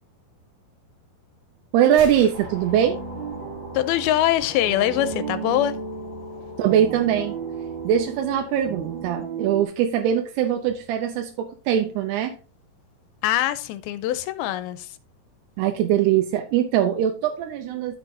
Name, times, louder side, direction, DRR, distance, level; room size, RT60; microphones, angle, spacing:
voice 1, 1.7-3.0 6.6-7.4 7.8-12.4 15.6-18.0, right 10 dB, 85° right, 2.9 m, -22 dB
Gunshot gunfire, 1.8-3.8, equal, 45° right, 2.1 m, -43 dB
sound 1, 2.3-9.1, left 2 dB, 30° left, 2.2 m, -42 dB
sound 2, 2.7-9.6, right 6 dB, 65° right, 1.1 m, -35 dB
voice 2, 3.7-5.8 13.2-15.0, left 13 dB, 80° left, 2.4 m, -23 dB
11.5 x 6.8 x 2.7 m
omnidirectional pair, 4.6 m